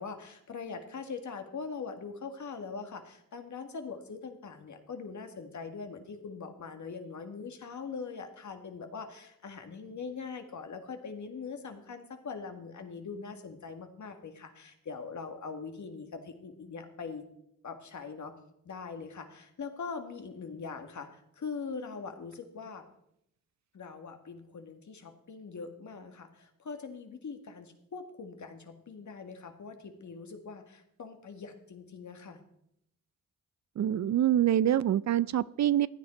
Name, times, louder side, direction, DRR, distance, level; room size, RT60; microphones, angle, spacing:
voice 1, 0.0-17.3 17.6-18.3 18.7-22.8 23.7-32.4, left 5 dB, 60° left, 6 dB, 1.9 m, -42 dB
voice 2, 33.8-35.9, right 11 dB, 55° right, 19 dB, 0.5 m, -25 dB
15.5 x 9.6 x 4.4 m, 0.77 s
cardioid pair, 55°, 33 cm